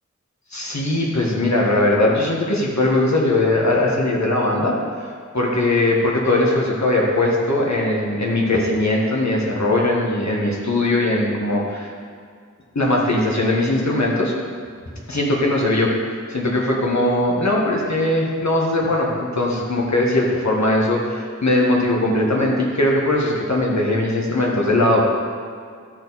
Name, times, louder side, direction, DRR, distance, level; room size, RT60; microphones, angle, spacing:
voice 1, 0.5-4.7 5.3-11.9 12.7-14.3 15.1-15.9 16.3-25.0, left 1 dB, 65° left, -3 dB, 1.6 m, -20 dB
13.0 x 4.6 x 4.2 m, 2.2 s
wide cardioid pair, 45°, 31 cm